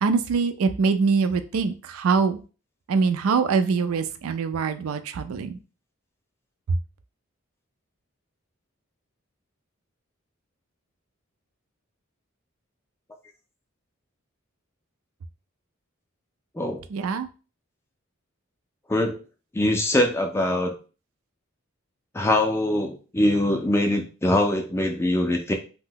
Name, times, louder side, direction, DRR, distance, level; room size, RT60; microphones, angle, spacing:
voice 1, 0.0-2.4 2.9-5.6 6.7-6.8 16.9-17.3, right 5 dB, 90° right, 10 dB, 0.4 m, -23 dB
voice 2, 19.5-20.7 22.1-25.5, left 1 dB, 10° left, 3 dB, 0.3 m, -23 dB
2.7 x 2.1 x 3.7 m, 0.35 s
head